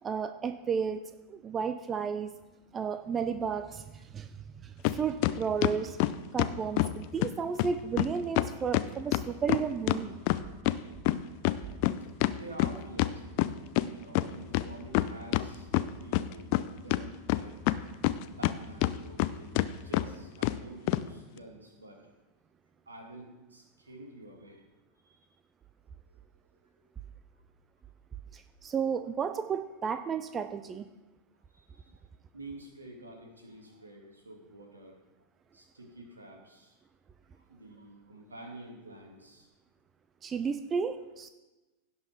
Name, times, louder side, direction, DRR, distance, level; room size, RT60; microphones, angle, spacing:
voice 1, 0.0-2.3 2.7-4.3 4.6-6.0 6.3-10.1 28.3-30.9 40.2-41.3, right 6 dB, 20° right, 10 dB, 0.5 m, -33 dB
sound 1, 4.8-5.0 5.2-6.9 7.2-7.3 7.6-7.7 8.0-8.1 8.4-10.8 11.1-13.9 14.1-14.2 14.5-15.5 15.7-16.6 16.9-18.5 18.8-19.3 19.6-19.7 19.9-20.1 20.4-20.6 20.9-21.0, left 17 dB, 45° left, 0.4 m, -26 dB
voice 2, 12.2-16.5 16.8-17.6 18.2-22.2 22.9-24.6 25.0-25.2 26.0-26.2 26.8-26.9 31.5-32.0 32.3-35.0 35.5-36.8 37.4-39.5, right 1 dB, 75° right, 2 dB, 2.2 m, -49 dB
16.5 x 5.7 x 4.6 m, 1.1 s
figure-of-eight pair, 90°, 0 cm